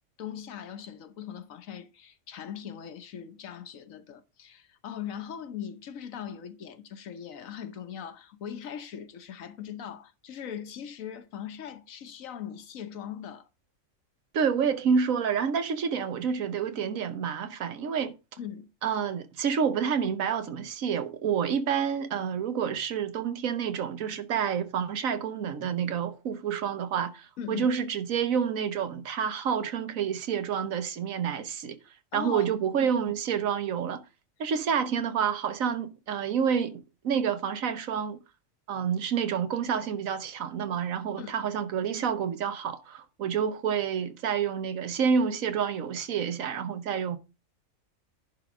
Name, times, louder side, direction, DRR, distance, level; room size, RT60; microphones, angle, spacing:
voice 1, 0.2-13.5 18.4-18.7 27.4-27.7 32.1-32.9 41.2-41.4, left 9 dB, 80° left, 1.3 m, -40 dB
voice 2, 14.3-18.2 18.8-31.8 32.1-34.0 34.4-38.2 38.7-47.2, right 7 dB, 85° right, 1.4 m, -28 dB
11.0 x 3.8 x 6.1 m
omnidirectional pair, 1.4 m